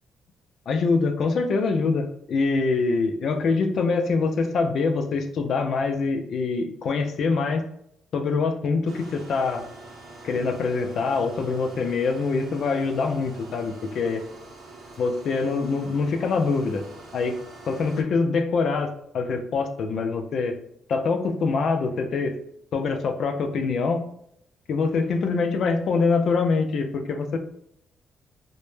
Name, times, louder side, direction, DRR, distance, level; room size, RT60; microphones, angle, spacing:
voice 1, 0.7-7.7 8.1-9.6 10.2-14.2 15.0-16.8 17.1-17.4 17.7-18.9 19.1-20.5 20.9-22.3 22.7-24.1 24.7-27.4, left 4 dB, 65° left, 6 dB, 0.3 m, -24 dB
sound 1, 8.9-18.0, right 2 dB, 65° right, 0.5 m, -45 dB
2.0 x 2.0 x 3.1 m, 0.73 s
cardioid pair, 90°, 0 cm